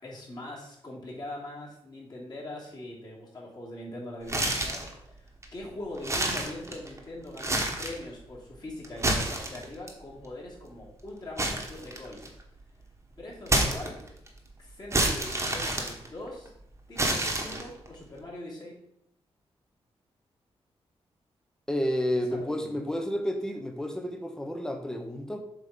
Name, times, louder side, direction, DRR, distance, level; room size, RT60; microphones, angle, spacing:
voice 1, 0.0-12.2 13.1-14.0 14.6-16.5 16.9-18.8 22.1-22.7, left 1 dB, 40° left, -5 dB, 2.7 m, -42 dB
sound 1, 4.2-4.9 5.4-5.5 6.0-7.0 7.3-8.0 8.8-9.9 11.4-12.4 13.5-14.3 14.9-16.5 17.0-17.9, right 1 dB, 25° right, 1.3 m, -28 dB
voice 2, 21.7-25.4, equal, 5° left, 4 dB, 0.9 m, -30 dB
7.5 x 3.1 x 5.3 m, 0.76 s
cardioid pair, 90°, 11 cm